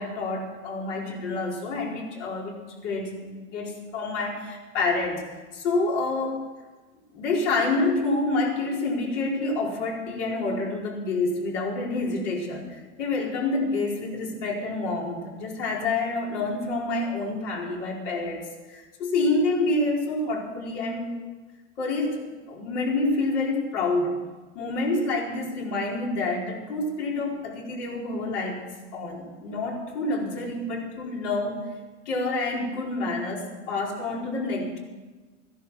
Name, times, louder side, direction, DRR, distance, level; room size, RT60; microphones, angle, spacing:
voice 1, 0.0-6.4 7.1-18.4 18.7-21.1 21.8-22.2 22.5-24.1 24.5-28.6 28.9-31.6 32.0-34.8, left 2 dB, 70° left, -2 dB, 4.7 m, -28 dB
15.0 x 11.0 x 7.3 m, 1.3 s
supercardioid pair, 125°, 37 cm